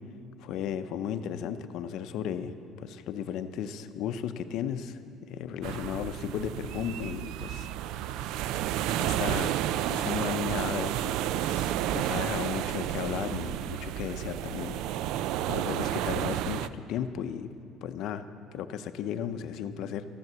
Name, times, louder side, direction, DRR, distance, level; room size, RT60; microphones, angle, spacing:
voice 1, 0.4-5.0 5.3-7.7 8.1-8.2 9.0-9.5 9.9-14.8 15.5-17.5 17.8-18.2 18.5-20.1, left 9 dB, 60° left, 10 dB, 0.6 m, -35 dB
sound 1, 5.6-16.7, right 12 dB, 70° right, 0.3 m, -31 dB
14.0 x 11.0 x 6.9 m, 2.5 s
cardioid pair, 155°, 0 cm